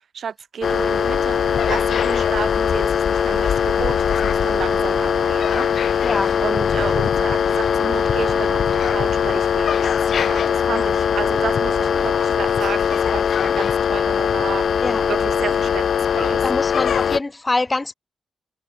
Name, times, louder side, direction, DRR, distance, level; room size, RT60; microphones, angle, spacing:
voice 1, 0.0-6.1 6.4-16.5, right 7 dB, 65° right, 2.0 m, -32 dB
sound 1, 0.6-17.2, left 7 dB, 70° left, 1.5 m, -20 dB
voice 2, 6.0-6.3 10.7-10.9 14.8-15.0 16.4-17.9, left 2 dB, 25° left, 1.9 m, -24 dB
cardioid pair, 60°, 0 cm